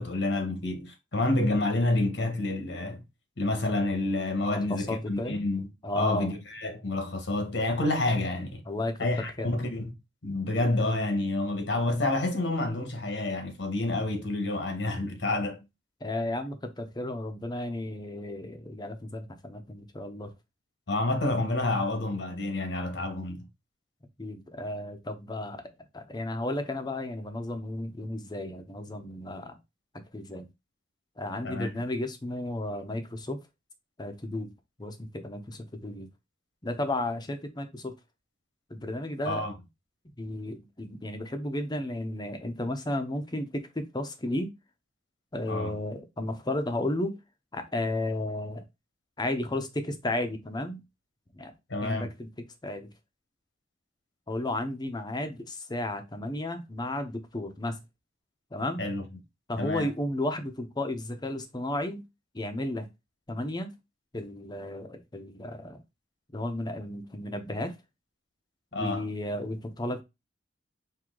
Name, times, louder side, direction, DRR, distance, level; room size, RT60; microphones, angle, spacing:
voice 1, 0.0-3.0 3.4-5.7 5.9-8.6 9.0-9.9 10.2-15.6 20.9-23.5 31.4-31.7 39.2-39.5 45.5-45.7 51.7-52.1 58.8-59.0 59.6-59.9 68.7-69.0, left 2 dB, 75° left, 1.2 m, -29 dB
voice 2, 4.4-5.4 5.8-6.4 8.7-9.0 9.4-9.5 16.0-20.3 24.2-25.6 25.9-29.6 30.1-30.5 31.2-33.4 34.0-34.5 34.8-36.1 36.6-37.9 38.7-39.4 40.2-44.5 45.3-47.2 47.5-48.6 49.2-50.8 51.3-51.5 51.8-52.3 52.6-52.9 54.3-57.8 58.5-58.8 59.5-62.0 62.3-62.9 63.3-63.7 64.1-65.8 66.3-67.8 68.8-70.0, left 1 dB, 25° left, 0.7 m, -33 dB
4.6 x 2.7 x 3.8 m
head